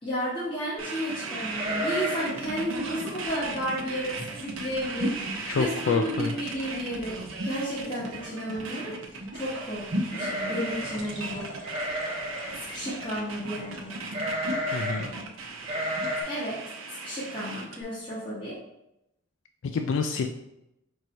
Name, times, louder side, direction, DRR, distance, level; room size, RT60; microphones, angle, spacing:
voice 1, 0.0-11.7 12.6-14.0 16.3-16.6 17.0-18.6, equal, 25° left, -10 dB, 1.1 m, -33 dB
sound 1, 0.8-17.8, right 3 dB, 90° right, 0.7 m, -38 dB
sound 2, 1.5-2.5 2.7-2.8 3.3-3.6 4.1-4.2 4.5-5.0 5.3-5.4 6.6-6.7 7.0-7.4 10.0-11.1 11.6-12.6 14.1-15.1 15.6-16.2, equal, 30° right, 1.0 m, -32 dB
sound 3, 1.5-16.2, equal, 65° right, 1.0 m, -39 dB
voice 2, 5.5-6.5 14.7-15.1 19.6-20.3, left 5 dB, 70° left, 5 dB, 0.3 m, -27 dB
4.7 x 2.6 x 4.3 m, 0.85 s
head